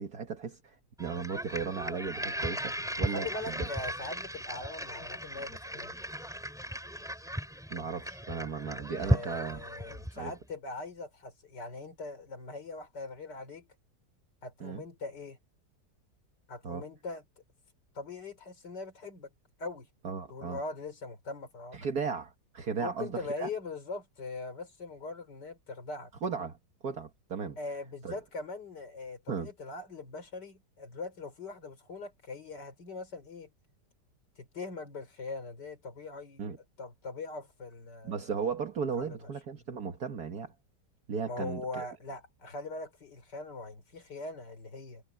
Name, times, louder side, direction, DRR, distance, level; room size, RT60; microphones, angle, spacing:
voice 1, 0.0-3.7 7.7-9.6 10.2-10.3 14.6-14.8 16.6-16.8 20.0-20.6 21.7-23.5 26.2-26.6 26.8-27.6 28.0-28.1 29.3-29.5 36.4-36.6 38.0-40.5 41.1-41.8, right 6 dB, 60° right, 2.0 m, -36 dB
sound 1, 1.0-10.3, equal, ahead, 3.4 m, -36 dB
voice 2, 3.0-5.9 9.0-13.7 14.4-15.4 16.5-17.2 17.9-19.3 19.6-19.9 20.3-21.8 22.8-26.1 27.6-33.5 34.4-36.5 36.8-38.2 39.0-39.2 41.2-45.0, left 3 dB, 70° left, 4.4 m, -41 dB
omnidirectional pair, 1.9 m